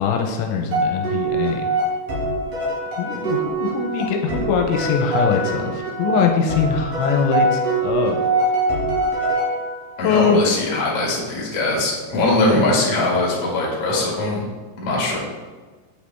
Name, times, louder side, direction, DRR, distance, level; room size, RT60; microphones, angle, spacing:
voice 1, 0.0-1.7 3.0-8.2 10.0-10.4 12.5-12.7, left 6 dB, 85° left, 3 dB, 2.9 m, -22 dB
sound 1, 0.7-10.0, right 2 dB, 85° right, 1.3 m, -23 dB
voice 2, 10.0-14.4 14.8-15.2, left 2 dB, 45° left, -4 dB, 2.1 m, -21 dB
8.3 x 5.1 x 3.4 m, 1.3 s
omnidirectional pair, 5.4 m